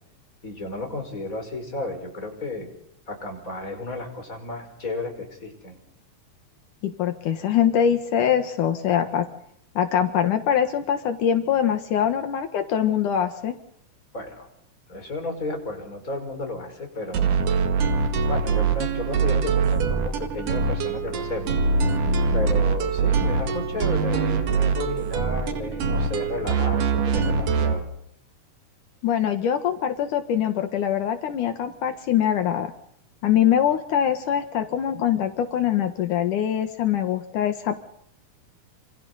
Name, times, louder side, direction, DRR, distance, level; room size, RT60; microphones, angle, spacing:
voice 1, 0.4-2.7 3.1-5.8 14.1-14.5 14.9-17.5 18.0-27.9, left 2 dB, 25° left, 3 dB, 5.8 m, -33 dB
voice 2, 6.8-9.3 9.8-13.5 29.0-32.7 33.2-37.8, left 9 dB, 75° left, 6 dB, 3.0 m, -23 dB
sound 1, 17.1-27.8, right 5 dB, 80° right, 3.5 m, -23 dB
29.0 x 27.5 x 4.1 m, 0.72 s
omnidirectional pair, 3.6 m